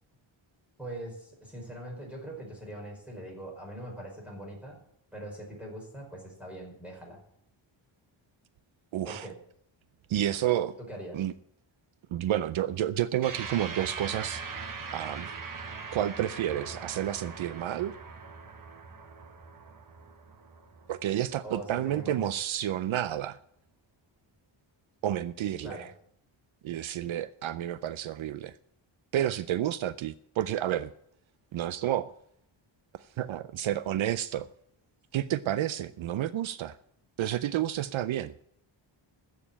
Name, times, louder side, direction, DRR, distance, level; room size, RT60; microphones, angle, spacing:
voice 1, 0.8-4.8 5.1-7.2 9.1-9.3 10.9-11.2 21.4-22.3 25.6-25.9, right 1 dB, 5° right, 5.3 m, -42 dB
voice 2, 8.9-9.3 10.1-10.8 11.1-11.3 12.1-14.4 14.9-15.3 15.9-17.9 20.9-23.4 25.0-25.9 26.6-28.6 29.1-30.9 31.5-32.1 32.9-34.5 35.1-36.8 37.2-38.3, right 12 dB, 75° right, 0.6 m, -30 dB
sound 1, 13.2-21.9, right 5 dB, 40° right, 1.2 m, -41 dB
14.0 x 6.9 x 8.8 m
wide cardioid pair, 155°, 48 cm